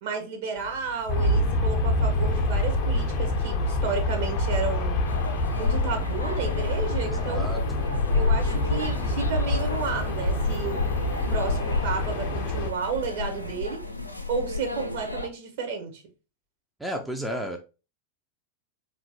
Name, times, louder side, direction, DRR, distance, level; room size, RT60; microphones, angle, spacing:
voice 1, 0.0-5.0 5.5-7.5 8.1-10.8 11.3-13.8 14.3-16.0, right 5 dB, 55° right, 1.1 m, -32 dB
sound 1, 0.6-13.6, right 1 dB, 75° right, 0.7 m, -43 dB
Aircraft, 1.1-12.7, left 1 dB, 40° left, 0.6 m, -27 dB
sound 2, 5.1-15.3, left 3 dB, 90° left, 0.5 m, -30 dB
voice 2, 7.0-7.8 16.8-17.6, equal, 5° right, 0.5 m, -33 dB
3.8 x 3.0 x 2.8 m
figure-of-eight pair, 90°, 0 cm